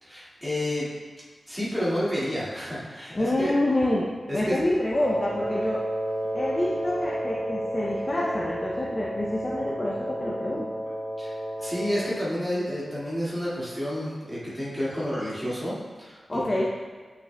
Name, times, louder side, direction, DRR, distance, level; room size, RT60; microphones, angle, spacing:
voice 1, 0.0-0.9 1.5-3.5 4.3-4.6 11.2-16.6, equal, 5° right, -9 dB, 1.9 m, -30 dB
voice 2, 3.1-4.0 4.3-5.8 6.3-10.6 16.3-16.6, left 1 dB, 25° left, -4 dB, 0.5 m, -27 dB
Wind instrument woodwind instrument, 4.9-12.2, right 1 dB, 50° left, 1.6 m, -31 dB
8.3 x 5.9 x 2.2 m, 1.5 s
wide cardioid pair, 165°, 0 cm